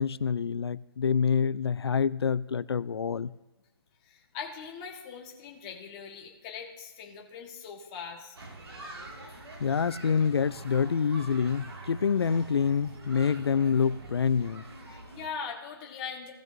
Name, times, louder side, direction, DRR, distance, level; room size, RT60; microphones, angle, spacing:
voice 1, 0.0-3.3 9.6-14.6, left 6 dB, 75° left, 0.5 m, -26 dB
voice 2, 4.0-8.3 14.9-16.3, left 6 dB, 15° left, 1.4 m, -41 dB
sound 1, 8.3-15.3, right 2 dB, 75° right, 2.2 m, -45 dB
18.0 x 6.2 x 2.6 m
hypercardioid pair, 170°, 13 cm